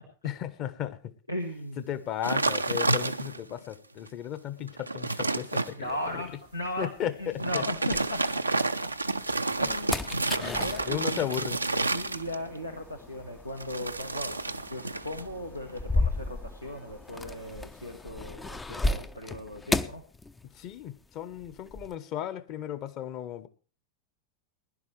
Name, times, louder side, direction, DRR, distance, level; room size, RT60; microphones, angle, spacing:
voice 1, 0.2-1.1 1.8-6.2 6.8-7.6 9.6-9.7 10.3-11.6 20.4-23.5, left 11 dB, 40° left, 13 dB, 1.2 m, -35 dB
voice 2, 1.3-1.8 5.7-8.7 9.6-10.3 10.6-11.3 11.9-20.0, left 1 dB, 85° left, 4 dB, 1.3 m, -37 dB
sound 1, 2.2-3.5 4.1-4.2 4.6-5.7 7.3-12.6 13.6-15.3 15.6-16.0, right 2 dB, 85° right, 0.6 m, -30 dB
sound 2, 5.9-8.7 9.1-20.9 21.1-21.9, left 2 dB, 10° left, 0.6 m, -35 dB
20.5 x 11.5 x 3.3 m, 0.37 s
figure-of-eight pair, 90°, 0 cm